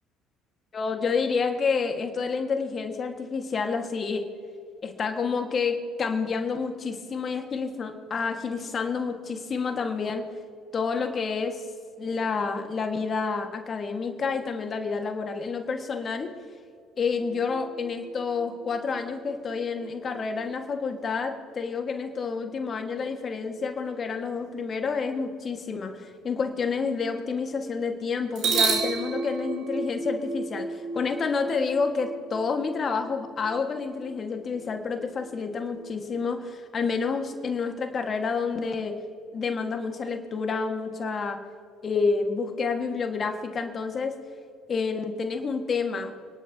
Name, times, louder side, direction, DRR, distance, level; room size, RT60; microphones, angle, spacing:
voice 1, 0.7-4.3 4.8-10.3 10.7-11.6 12.0-16.3 17.0-38.9 39.3-41.4 41.8-44.1 44.7-46.1, left 5 dB, 40° left, 5 dB, 1.7 m, -29 dB
sound 1, 17.2-20.8 28.4-36.2, right 5 dB, 65° right, 3.4 m, -34 dB
29.5 x 11.0 x 2.9 m, 2.2 s
hypercardioid pair, 60°, 0 cm